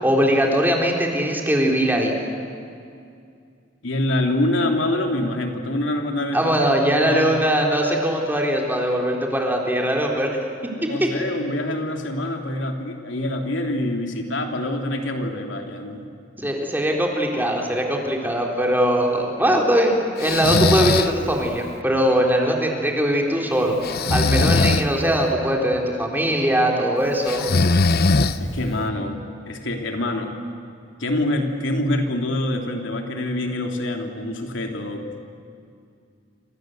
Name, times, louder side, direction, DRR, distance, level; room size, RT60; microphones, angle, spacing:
voice 1, 0.0-2.1 6.3-10.4 10.8-11.1 16.4-23.8 24.1-27.5, equal, 10° right, 0 dB, 3.8 m, -21 dB
voice 2, 3.8-6.5 6.8-7.4 10.9-16.0 28.4-29.2 29.5-30.3 31.0-35.0, left 1 dB, 75° left, 3 dB, 3.1 m, -25 dB
Breathing, 20.2-21.1 23.8-24.9 27.3-28.7, left 3 dB, 55° left, 0.9 m, -19 dB
28.0 x 26.5 x 8.0 m, 2.4 s
head